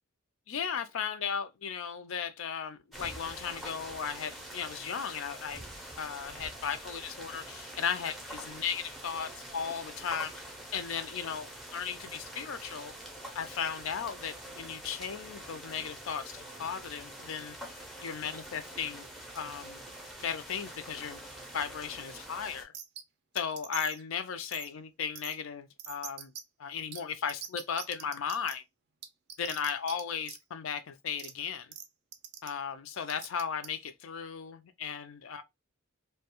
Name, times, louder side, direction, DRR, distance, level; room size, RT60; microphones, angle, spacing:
voice 1, 0.5-5.6 6.0-10.4 10.7-12.9 13.3-17.7 18.0-19.1 19.3-19.8 20.2-21.3 21.5-22.7 23.3-26.3 26.6-28.6 29.4-31.7 32.4-35.4, left 7 dB, 65° left, 0.4 m, -36 dB
sound 1, 2.9-22.6, right 1 dB, ahead, 0.5 m, -45 dB
sound 2, 22.7-23.0 23.4-24.0 24.5-24.7 25.2-25.4 25.8-26.4 26.9-27.0 27.3-28.5 29.0-30.0 30.3-30.4 31.2-31.3 31.7-31.9 32.1-32.5 33.1-33.7, right 9 dB, 50° right, 0.4 m, -42 dB
2.3 x 2.2 x 2.8 m
head